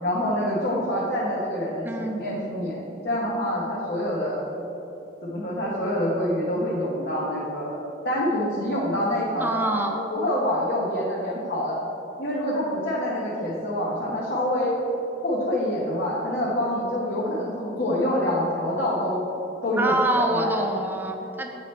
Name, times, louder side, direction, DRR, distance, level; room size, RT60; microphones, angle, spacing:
voice 1, 0.0-4.4 5.2-11.8 12.2-14.7 15.2-19.2 19.6-20.6, left 1 dB, 60° left, -7 dB, 1.1 m, -26 dB
voice 2, 1.8-2.2 9.4-10.0 19.8-21.5, right 1 dB, 10° right, 3 dB, 0.5 m, -25 dB
8.0 x 5.0 x 4.3 m, 3.0 s
head